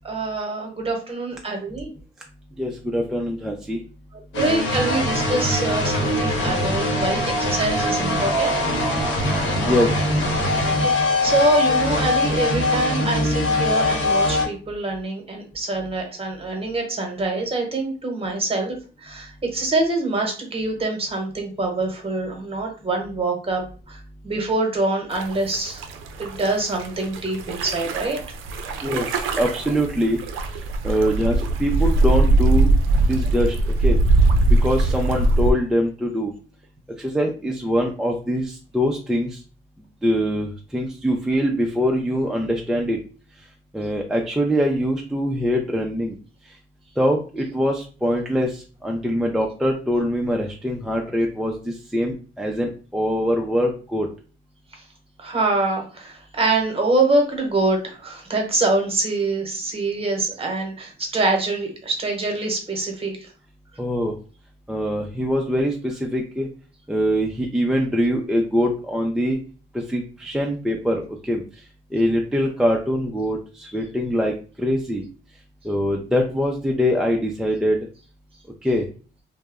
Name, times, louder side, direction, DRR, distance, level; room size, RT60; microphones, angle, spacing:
voice 1, 0.0-1.9 4.3-8.6 10.6-18.8 19.0-23.6 23.9-24.0 24.2-25.8 26.2-28.2 28.7-28.8 55.2-63.3 73.6-73.7, right 2 dB, 30° right, 2 dB, 0.9 m, -25 dB
voice 2, 2.6-3.8 9.6-9.9 28.8-30.2 30.8-32.7 33.1-33.5 33.8-34.0 34.6-36.3 37.0-39.4 40.0-43.0 43.7-46.2 47.0-48.5 48.8-54.1 63.8-64.1 64.7-66.5 66.9-69.4 69.9-71.4 71.9-75.0 75.7-77.8 78.6-78.8, equal, 5° right, 0 dB, 0.3 m, -23 dB
sound 1, 4.3-14.5, left 1 dB, 70° left, 0.9 m, -22 dB
sound 2, 25.1-35.5, right 2 dB, 85° right, 0.4 m, -21 dB
2.1 x 2.0 x 3.4 m, 0.37 s
cardioid pair, 90°, 20 cm